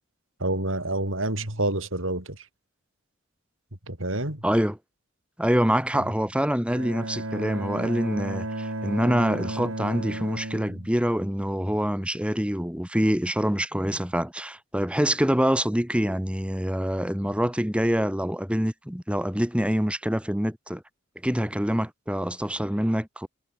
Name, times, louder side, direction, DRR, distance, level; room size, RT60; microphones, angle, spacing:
voice 1, 0.4-2.5 3.9-4.4 5.9-6.1, right 2 dB, 70° right, 7.3 m, -28 dB
voice 2, 4.4-4.8 5.4-20.8 21.2-23.3, equal, 5° right, 2.6 m, -25 dB
Bowed string instrument, 6.7-11.7, right 1 dB, 85° right, 3.7 m, -34 dB
head